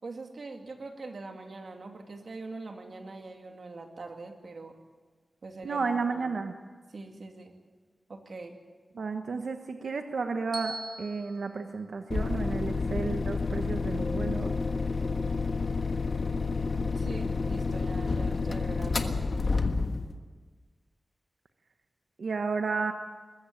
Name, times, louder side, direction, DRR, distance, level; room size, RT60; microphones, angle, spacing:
voice 1, 0.0-4.8 5.4-5.8 6.1-6.4 6.9-7.5 8.1-8.6 16.7-19.2, right 3 dB, 65° right, 4 dB, 2.5 m, -43 dB
voice 2, 5.6-6.5 8.9-14.5 22.2-22.9, right 4 dB, 80° right, 6 dB, 1.1 m, -32 dB
Bell, 10.5-12.7, right 2 dB, 25° right, 3.2 m, -43 dB
sound 1, 12.1-20.1, left 4 dB, 60° left, 1.4 m, -29 dB
Keyboard (musical), 13.9-16.7, left 2 dB, 25° left, 4.7 m, -46 dB
21.0 x 15.0 x 9.2 m, 1.5 s
wide cardioid pair, 90°, 0 cm